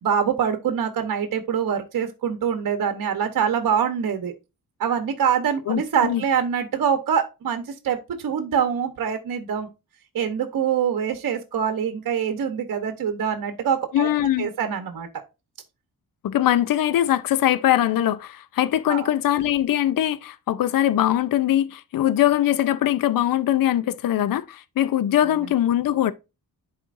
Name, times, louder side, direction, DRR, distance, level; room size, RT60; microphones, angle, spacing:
voice 1, 0.0-4.3 4.8-9.7 10.1-14.1 14.4-15.2 18.9-19.1, right 7 dB, 60° right, 1.0 m, -24 dB
voice 2, 5.7-6.2 13.9-14.5 16.2-26.1, left 12 dB, 60° left, 0.6 m, -21 dB
11.0 x 4.4 x 2.6 m
cardioid pair, 120°, 37 cm